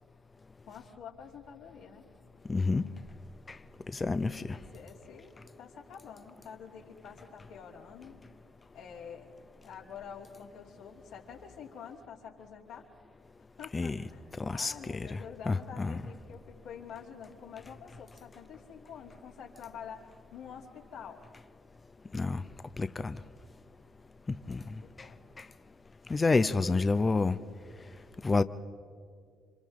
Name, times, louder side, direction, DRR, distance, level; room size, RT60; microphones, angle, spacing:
voice 1, 0.7-2.0 4.2-8.2 8.7-12.9 13.6-21.2 24.5-24.6 24.8-25.3, left 7 dB, 80° left, 3.1 m, -48 dB
voice 2, 2.5-2.8 3.5-3.6 3.9-4.6 13.7-14.0 14.4-15.2 15.5-16.0 22.1-22.4 22.8-23.2 24.5-24.6 26.1-27.4 28.2-28.4, left 3 dB, 30° left, 0.7 m, -28 dB
29.5 x 26.0 x 3.8 m
hypercardioid pair, 55°, 0 cm